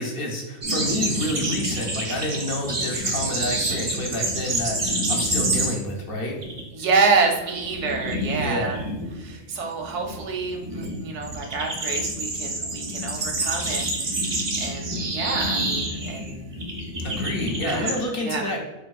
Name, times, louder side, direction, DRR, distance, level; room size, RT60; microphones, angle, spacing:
voice 1, 0.0-6.4 8.3-8.8 17.0-18.6, left 1 dB, 60° left, 1 dB, 0.8 m, -29 dB
sound 1, 0.6-6.0 6.3-6.6 6.9-18.0, right 1 dB, 45° right, 0.3 m, -28 dB
voice 2, 6.7-8.8 9.1-16.5 17.6-18.6, right 4 dB, 90° right, 2 dB, 0.9 m, -27 dB
4.2 x 2.5 x 2.3 m, 1.1 s
omnidirectional pair, 1.2 m